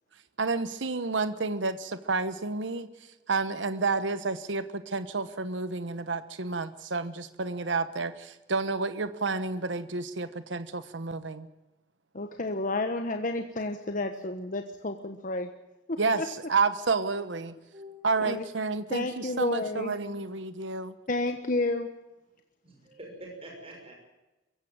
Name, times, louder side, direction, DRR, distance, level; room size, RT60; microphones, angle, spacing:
voice 1, 0.4-2.9 3.3-11.5 16.0-17.5 18.0-20.9, right 4 dB, 85° right, 12 dB, 1.2 m, -30 dB
voice 2, 12.1-15.5 15.9-16.3 18.2-18.4 18.9-19.9 21.1-21.9, left 2 dB, 45° left, 6 dB, 1.3 m, -31 dB
voice 3, 17.7-18.2 22.6-24.0, right 1 dB, 30° right, 0 dB, 6.0 m, -46 dB
22.5 x 16.0 x 8.9 m, 1.0 s
head